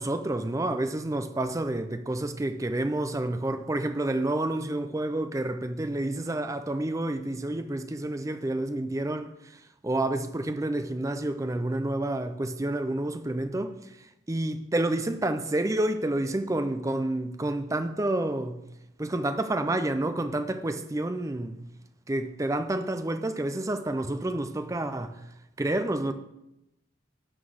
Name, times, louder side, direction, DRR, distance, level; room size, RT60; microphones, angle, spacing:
voice 1, 0.0-14.0 14.3-18.6 19.0-21.6 22.1-25.2 25.6-26.1, right 1 dB, 15° right, 0.4 m, -29 dB
11.0 x 3.9 x 6.4 m
head